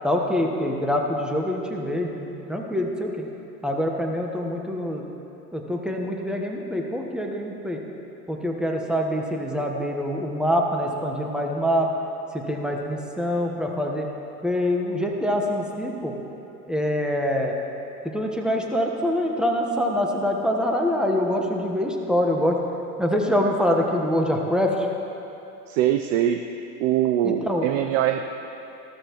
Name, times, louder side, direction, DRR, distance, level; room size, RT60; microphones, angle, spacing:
voice 1, 0.0-3.2 3.6-5.1 5.5-7.8 8.3-11.9 12.3-14.1 14.4-16.2 16.7-17.5 18.0-22.6 23.0-24.9 27.2-27.7, equal, ahead, 1 dB, 1.3 m, -25 dB
voice 2, 25.7-26.4 26.8-28.2, right 11 dB, 55° right, 6 dB, 0.6 m, -22 dB
14.5 x 13.0 x 3.2 m, 3.0 s
hypercardioid pair, 85°, 46 cm